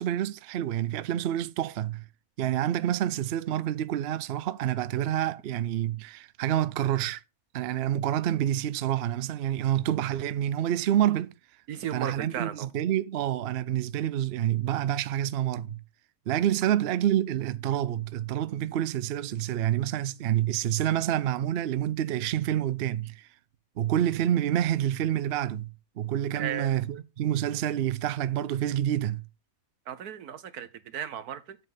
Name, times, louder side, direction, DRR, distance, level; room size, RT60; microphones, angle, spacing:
voice 1, 0.0-2.0 2.4-7.2 7.5-11.3 11.9-15.8 16.3-23.3 23.8-25.7 26.0-29.2, right 11 dB, 60° right, 0.6 m, -28 dB
voice 2, 11.7-12.7 26.3-26.8 29.9-31.6, right 9 dB, 90° right, 1.4 m, -35 dB
8.0 x 7.6 x 3.9 m
omnidirectional pair, 1.6 m